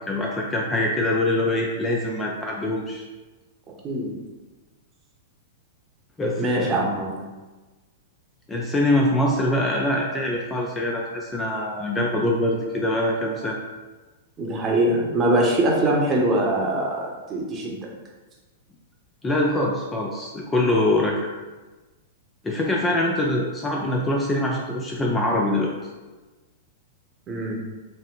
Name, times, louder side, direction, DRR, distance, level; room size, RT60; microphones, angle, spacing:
voice 1, 0.1-3.1 6.2-6.8 8.5-13.6 19.2-21.2 22.4-25.7, left 1 dB, 15° left, -1 dB, 0.4 m, -23 dB
voice 2, 6.4-7.2 14.4-17.8 27.3-27.6, right 1 dB, 25° right, -2 dB, 0.9 m, -23 dB
3.7 x 2.0 x 3.7 m, 1.2 s
figure-of-eight pair, 105°, 0 cm